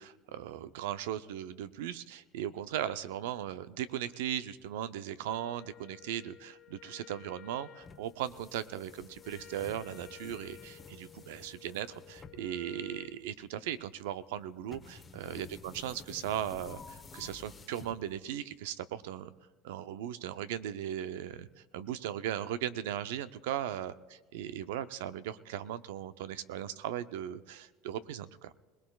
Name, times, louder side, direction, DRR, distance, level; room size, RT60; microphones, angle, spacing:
voice 1, 0.0-19.3 19.6-21.5 21.7-28.5, right 11 dB, 85° right, 13 dB, 0.5 m, -38 dB
Wind instrument woodwind instrument, 5.2-13.2, left 12 dB, 55° left, 1.1 m, -54 dB
sound 1, 7.8-18.4, left 4 dB, 25° left, 1.0 m, -52 dB
21.5 x 19.0 x 2.4 m, 1.2 s
supercardioid pair, 100°, 0 cm